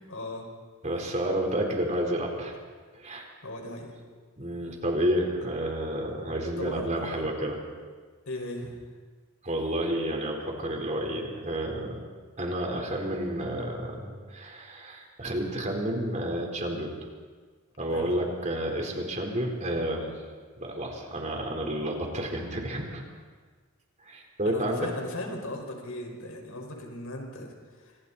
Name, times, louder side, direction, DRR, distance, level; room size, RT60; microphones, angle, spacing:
voice 1, 0.1-0.5 3.4-3.9 6.6-7.2 8.3-8.8 17.9-18.1 24.4-28.0, left 1 dB, 75° left, 1 dB, 5.6 m, -38 dB
voice 2, 0.8-2.5 2.9-3.3 4.4-7.6 9.4-12.0 12.4-16.9 17.8-20.1 20.6-23.0 24.0-24.8, right 1 dB, 35° right, 1 dB, 4.3 m, -30 dB
29.5 x 26.5 x 4.3 m, 1.5 s
head